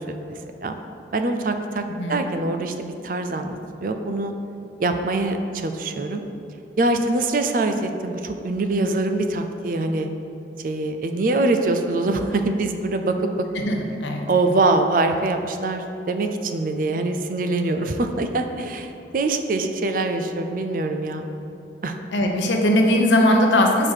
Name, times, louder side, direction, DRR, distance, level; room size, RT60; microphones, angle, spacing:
voice 1, 0.1-0.8 1.1-1.8 2.1-4.3 4.8-6.3 6.8-10.1 10.6-13.3 14.3-21.3 21.8-22.0, right 2 dB, 50° right, 6 dB, 0.4 m, -24 dB
voice 2, 1.9-2.2 13.5-14.3 22.1-23.9, left 1 dB, 90° left, 2 dB, 0.8 m, -19 dB
5.0 x 4.6 x 5.6 m, 2.8 s
head